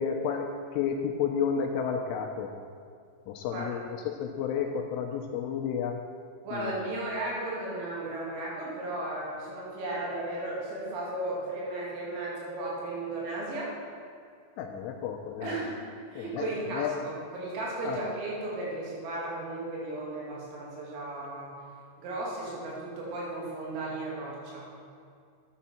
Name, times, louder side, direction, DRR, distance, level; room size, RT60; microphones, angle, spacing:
voice 1, 0.0-2.5 3.3-6.0 6.5-6.7 14.6-15.6 16.2-16.5 16.7-16.9 17.8-18.0, left 7 dB, 80° left, 3 dB, 3.0 m, -31 dB
voice 2, 6.4-13.7 15.4-15.8 16.1-21.5 22.0-24.6, right 2 dB, 80° right, -5 dB, 4.9 m, -35 dB
10.0 x 9.3 x 4.3 m, 2.2 s
omnidirectional pair, 5.9 m